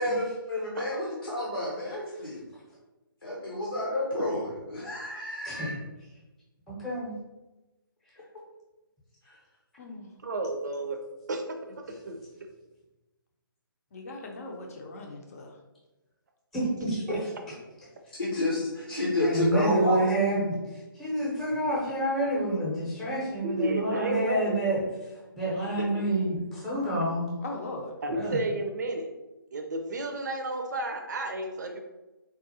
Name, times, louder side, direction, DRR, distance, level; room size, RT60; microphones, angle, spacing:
voice 1, 0.0-2.4 3.2-5.7 9.3-9.4 18.2-20.0, left 1 dB, 85° left, -5 dB, 0.8 m, -29 dB
voice 2, 5.4-5.8 6.7-7.1 16.5-17.3 19.2-25.1 25.4-27.3 28.1-28.4, right 1 dB, ahead, -8 dB, 0.8 m, -29 dB
voice 3, 10.2-11.0 11.3-11.4 11.7-12.2 17.1-17.2 23.4-24.6 28.0-29.1 29.5-31.8, right 2 dB, 50° right, 4 dB, 0.5 m, -31 dB
voice 4, 13.9-15.5 27.4-27.9, left 2 dB, 40° left, 2 dB, 0.6 m, -39 dB
3.7 x 2.4 x 2.7 m, 1.1 s
figure-of-eight pair, 145°, 12 cm